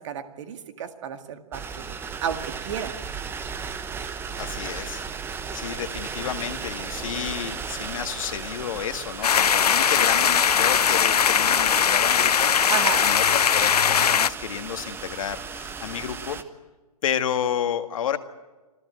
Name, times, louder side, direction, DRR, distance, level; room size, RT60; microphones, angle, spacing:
voice 1, 0.0-2.0 2.2-2.9 5.5-5.6 12.7-13.0, right 8 dB, 50° right, 8 dB, 2.0 m, -32 dB
sound 1, 1.5-16.4, right 5 dB, 10° right, 1.0 m, -35 dB
voice 2, 4.4-5.0 5.5-12.7 13.0-16.4 17.0-18.2, left 9 dB, 60° left, 8 dB, 1.8 m, -31 dB
sound 2, 9.2-14.3, left 7 dB, 85° left, 0.6 m, -20 dB
26.0 x 15.0 x 9.2 m, 1.2 s
hypercardioid pair, 130°, 19 cm